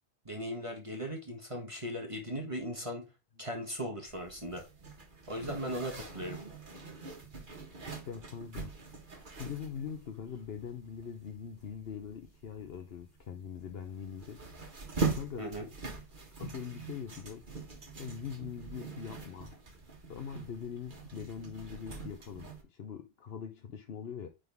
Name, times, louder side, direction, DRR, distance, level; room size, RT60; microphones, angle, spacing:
voice 1, 0.2-3.0 3.4-4.6 5.3-6.4 15.4-15.7, equal, 30° right, 1.4 m, -38 dB
Zipper (clothing), 4.1-22.6, right 4 dB, 50° right, 1.6 m, -42 dB
voice 2, 8.1-8.7 9.4-14.4 15.1-15.5 16.4-17.5 18.0-19.6 20.1-24.3, left 7 dB, 65° left, 1.0 m, -42 dB
9.4 x 3.9 x 3.5 m
omnidirectional pair, 1.1 m